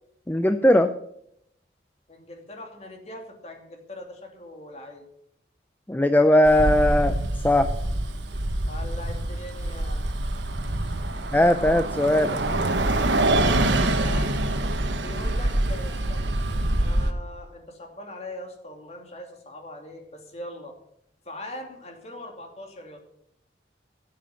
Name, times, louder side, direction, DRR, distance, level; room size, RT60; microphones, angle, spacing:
voice 1, 0.3-0.9 5.9-7.1 7.4-7.7 11.3-12.4, left 1 dB, 10° left, 9 dB, 0.5 m, -19 dB
voice 2, 2.1-5.0 8.6-10.0 11.0-11.3 13.5-14.4 15.0-20.7 21.2-23.0, left 1 dB, 35° left, 3 dB, 2.6 m, -41 dB
Bus, 6.4-17.1, right 1 dB, 80° right, 1.4 m, -25 dB
14.5 x 7.6 x 7.1 m, 0.74 s
head